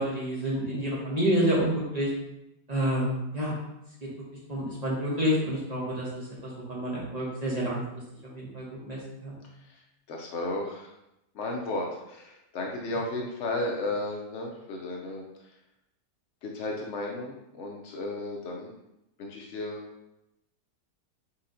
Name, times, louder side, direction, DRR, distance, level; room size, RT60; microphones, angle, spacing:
voice 1, 0.0-2.1 2.7-3.5 4.5-7.8 8.2-9.4, equal, 30° right, -5 dB, 0.8 m, -29 dB
voice 2, 10.1-10.9 11.3-15.5 16.4-18.7 19.2-19.8, left 2 dB, 85° left, 0 dB, 0.6 m, -34 dB
4.3 x 3.8 x 2.6 m, 0.87 s
omnidirectional pair, 1.9 m